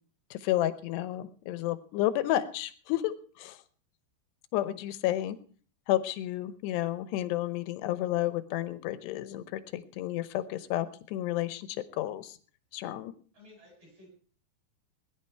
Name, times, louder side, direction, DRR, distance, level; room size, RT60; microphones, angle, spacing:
voice 1, 0.3-3.6 4.5-5.4 5.9-12.4 12.7-13.1, left 14 dB, 80° left, 14 dB, 3.0 m, -31 dB
voice 2, 13.3-14.1, left 2 dB, 35° right, 0 dB, 8.5 m, -55 dB
20.5 x 11.0 x 4.5 m, 0.41 s
omnidirectional pair, 4.8 m